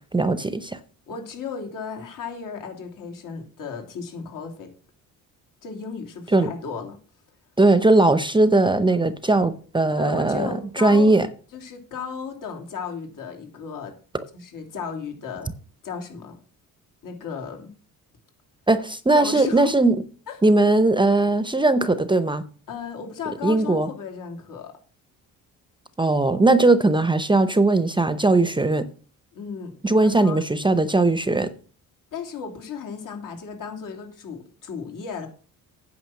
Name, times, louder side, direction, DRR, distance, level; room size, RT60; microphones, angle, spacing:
voice 1, 0.1-0.8 6.3-6.5 7.6-10.5 10.8-11.3 18.7-20.0 20.4-22.4 23.4-23.9 26.0-28.9 29.8-31.5, right 2 dB, 15° right, 0.7 m, -19 dB
voice 2, 1.1-4.7 5.6-7.0 9.9-11.2 11.5-13.9 14.3-15.5 15.8-16.4 17.0-17.7 19.1-19.7 20.3-20.4 22.7-24.8 29.3-30.4 32.1-35.3, left 6 dB, 70° left, 3.1 m, -35 dB
9.3 x 6.0 x 7.5 m
cardioid pair, 110°, 34 cm